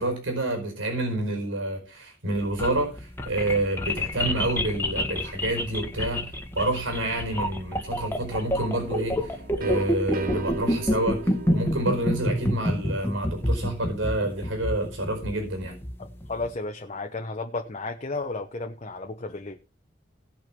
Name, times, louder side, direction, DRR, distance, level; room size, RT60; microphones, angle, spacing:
voice 1, 0.0-15.8, right 1 dB, 90° right, 5 dB, 4.7 m, -28 dB
sound 1, 2.3-16.5, left 1 dB, 10° left, 1.6 m, -27 dB
sound 2, 8.5-14.2, right 5 dB, 50° right, 0.8 m, -39 dB
voice 2, 16.0-19.6, left 3 dB, 35° left, 3 dB, 1.0 m, -33 dB
17.0 x 6.3 x 6.1 m, 0.33 s
head